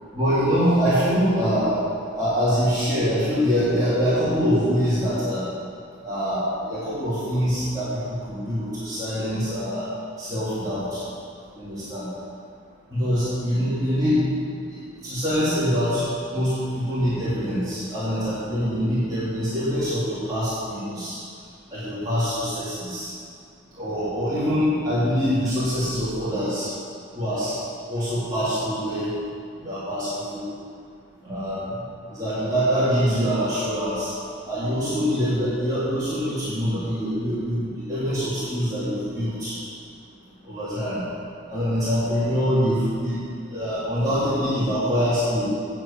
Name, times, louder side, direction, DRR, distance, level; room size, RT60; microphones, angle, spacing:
voice 1, 0.1-1.7 2.2-5.5 6.0-9.8 10.2-11.0 11.6-12.1 12.9-14.2 14.7-16.0 16.3-21.2 21.7-23.1 23.8-26.7 27.1-27.6 27.9-29.1 29.6-30.4 31.2-31.7 32.1-34.1 34.4-39.5 40.5-41.0 41.5-43.2 43.5-45.5, equal, 20° right, -14 dB, 3.7 m, -24 dB
9.1 x 7.5 x 9.1 m, 2.3 s
head